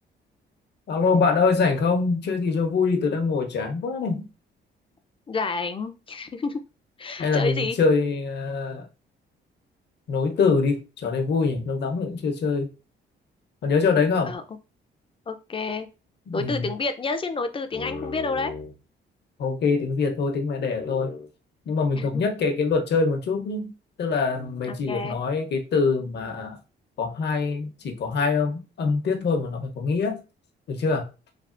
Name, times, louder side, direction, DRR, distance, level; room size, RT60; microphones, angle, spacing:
voice 1, 0.9-4.3 7.2-8.8 10.1-12.7 13.6-14.3 16.3-16.7 17.7-18.7 19.4-21.3 21.7-23.7 24.0-26.6 27.0-30.2 30.7-31.0, left 4 dB, 60° left, 0.9 m, -24 dB
voice 2, 5.3-6.6 7.0-7.8 14.2-14.4 15.3-15.9 16.3-18.5 22.0-22.2 24.6-25.2, left 3 dB, 25° left, 0.5 m, -29 dB
3.4 x 2.3 x 2.5 m
cardioid pair, 90°, 20 cm